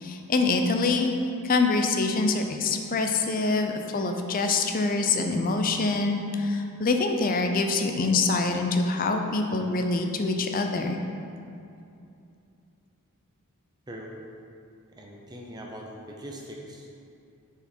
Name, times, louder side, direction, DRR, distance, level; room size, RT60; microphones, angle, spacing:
voice 1, 0.0-1.1 1.4-11.0, left 3 dB, 40° left, 5 dB, 0.5 m, -25 dB
voice 2, 15.0-16.9, equal, 20° right, -1 dB, 0.6 m, -41 dB
6.5 x 4.9 x 4.4 m, 2.6 s
head